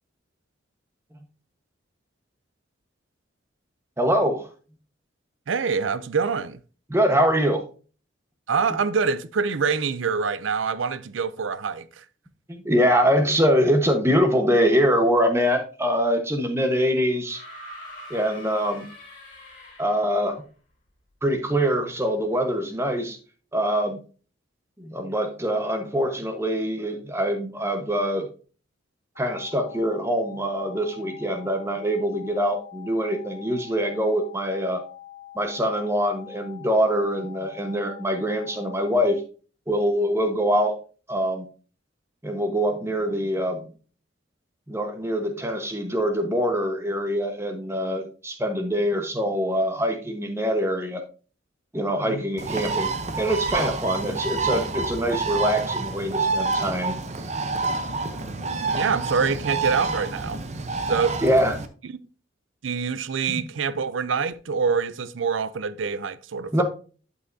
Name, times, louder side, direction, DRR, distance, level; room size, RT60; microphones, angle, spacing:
voice 1, 4.0-4.5 6.9-7.6 12.5-17.4 18.1-18.9 19.8-20.4 21.2-23.2 23.5-24.0 24.8-28.3 29.2-34.8 35.3-39.2 39.7-40.8 41.1-41.5 42.2-43.7 44.7-51.0 51.7-52.9 53.2-57.0 61.2-61.5 66.5-66.6, equal, 15° right, 1.1 m, -24 dB
voice 2, 5.5-6.6 8.5-12.0 52.1-52.3 58.7-60.4 60.9-61.2 62.6-66.6, right 5 dB, 80° right, 0.5 m, -25 dB
sound 1, 17.2-20.3 21.6-21.7, equal, 40° left, 3.0 m, -44 dB
sound 2, 29.2-39.2, left 13 dB, 60° left, 2.5 m, -45 dB
Bird, 52.4-61.7, right 3 dB, 35° right, 0.7 m, -28 dB
11.5 x 5.7 x 2.6 m
head